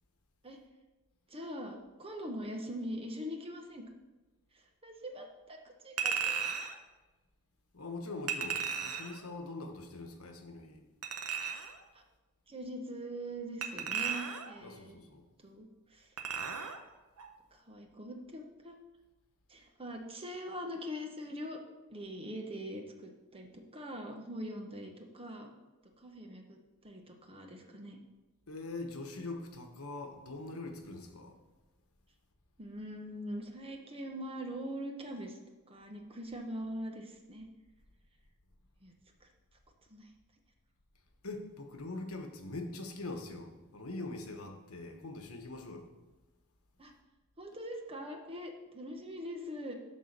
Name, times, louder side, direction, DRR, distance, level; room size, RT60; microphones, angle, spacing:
voice 1, 1.3-3.9 4.5-5.6 5.8-6.5 11.9-12.0 12.5-15.0 15.4-16.1 17.5-18.8 19.5-21.6 21.9-25.5 26.0-26.6 26.8-28.0 32.6-35.4 35.7-37.5 38.8-38.9 39.2-39.3 39.9-40.1 46.8-46.9 47.4-49.7, equal, 25° right, 2 dB, 1.1 m, -42 dB
Chink clink, 6.0-6.8 8.3-9.2 11.0-11.8 13.6-14.6 16.2-16.8 17.2-17.3, right 7 dB, 80° right, 0.9 m, -35 dB
voice 2, 7.7-10.8 14.6-15.2 28.5-31.4 41.2-45.9, left 2 dB, 70° left, 4 dB, 1.2 m, -43 dB
11.0 x 3.9 x 6.6 m, 1.1 s
head